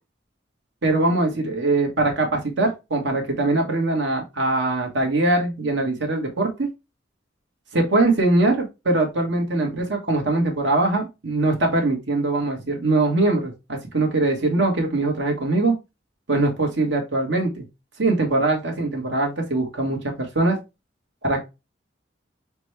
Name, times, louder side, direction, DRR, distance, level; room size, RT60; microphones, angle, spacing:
voice 1, 0.8-6.7 7.7-15.7 16.3-17.6 18.0-20.6 21.2-21.4, right 2 dB, 70° right, 2 dB, 1.3 m, -22 dB
5.9 x 2.3 x 3.2 m, 0.25 s
head